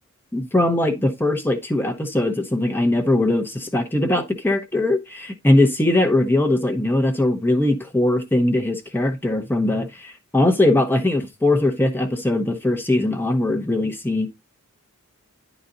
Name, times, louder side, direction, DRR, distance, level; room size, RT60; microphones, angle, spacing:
voice 1, 0.3-14.3, left 1 dB, 10° left, 0.8 m, -20 dB
10.0 x 4.0 x 3.8 m
head